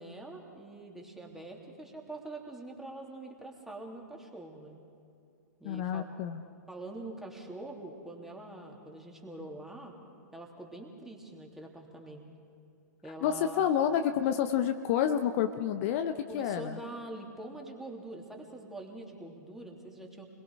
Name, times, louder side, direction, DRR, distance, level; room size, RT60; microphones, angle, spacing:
voice 1, 0.0-4.8 5.6-6.0 6.7-9.9 10.3-12.2 13.0-13.7 16.3-20.2, right 2 dB, 5° right, 0 dB, 3.1 m, -44 dB
voice 2, 5.6-6.4 13.2-16.8, left 9 dB, 45° left, 7 dB, 1.0 m, -29 dB
30.0 x 22.0 x 4.9 m, 2.5 s
figure-of-eight pair, 110°, 10 cm